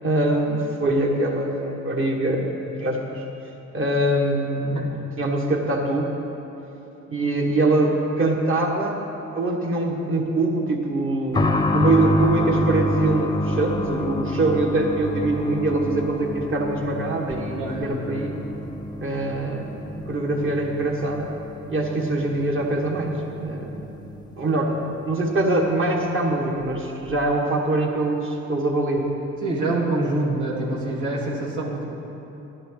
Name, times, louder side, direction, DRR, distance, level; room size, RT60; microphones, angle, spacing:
voice 1, 0.0-3.2 3.7-4.9 5.2-6.1 7.1-9.0 9.3-18.4 19.0-21.3 21.7-23.8 24.4-29.1, right 2 dB, 45° right, 0 dB, 1.8 m, -23 dB
sound 1, 11.3-25.8 26.0-26.1 27.1-27.2, left 1 dB, 15° left, 0.7 m, -28 dB
voice 2, 17.5-18.0 29.4-31.8, right 2 dB, 75° right, -5 dB, 2.4 m, -26 dB
12.0 x 11.0 x 4.1 m, 3.0 s
cardioid pair, 90°, 30 cm